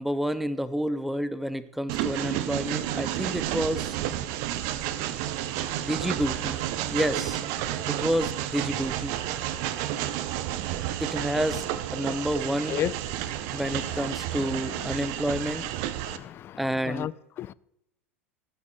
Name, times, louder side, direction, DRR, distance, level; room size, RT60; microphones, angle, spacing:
voice 1, 0.0-4.0 5.8-7.4 7.9-9.2 11.0-11.7 11.9-12.8 13.5-15.7 16.6-17.1, equal, ahead, 0.7 m, -29 dB
Train, 1.9-16.2, right 12 dB, 50° right, 0.8 m, -31 dB
voice 2, 12.5-12.9 13.5-13.6 16.0-17.1 17.4-17.5, left 12 dB, 35° left, 0.3 m, -33 dB
13.5 x 9.1 x 3.4 m
figure-of-eight pair, 80°, 7 cm